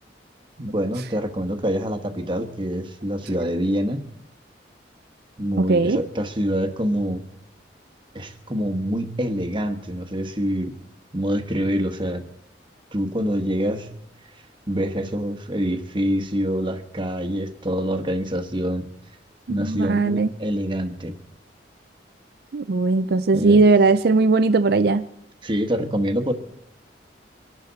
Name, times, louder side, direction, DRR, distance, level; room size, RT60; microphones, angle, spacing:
voice 1, 0.6-4.0 5.4-7.2 8.1-10.7 11.1-12.2 12.9-13.9 14.7-18.8 19.5-21.1 23.3-23.6 25.4-26.3, equal, 25° right, 7 dB, 1.3 m, -25 dB
voice 2, 5.6-6.0 19.5-20.3 22.5-25.1, right 3 dB, 60° right, 10 dB, 0.5 m, -18 dB
24.0 x 11.5 x 4.1 m, 0.74 s
head